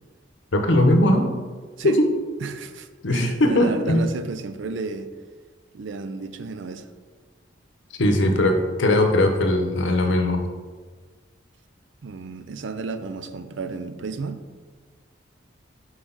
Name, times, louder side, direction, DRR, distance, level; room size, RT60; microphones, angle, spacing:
voice 1, 0.5-1.3 1.8-2.1 3.0-4.0 8.0-10.4, left 1 dB, 70° left, 4 dB, 0.8 m, -19 dB
voice 2, 2.4-5.1 5.7-6.9 12.0-14.4, right 4 dB, 70° right, 10 dB, 0.4 m, -32 dB
6.0 x 4.8 x 3.9 m, 1.5 s
head